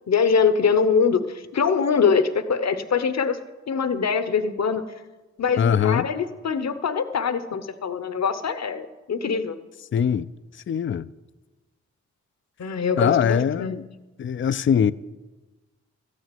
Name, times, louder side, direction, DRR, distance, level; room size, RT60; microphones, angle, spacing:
voice 1, 0.1-3.4 3.7-4.8 5.4-9.6 12.6-13.8, left 5 dB, 60° left, 0.9 m, -23 dB
voice 2, 5.6-6.1 9.9-10.3 10.7-11.1 13.0-13.8 14.2-14.9, left 8 dB, 40° left, 0.4 m, -21 dB
13.0 x 6.4 x 9.1 m
cardioid pair, 55°, 30 cm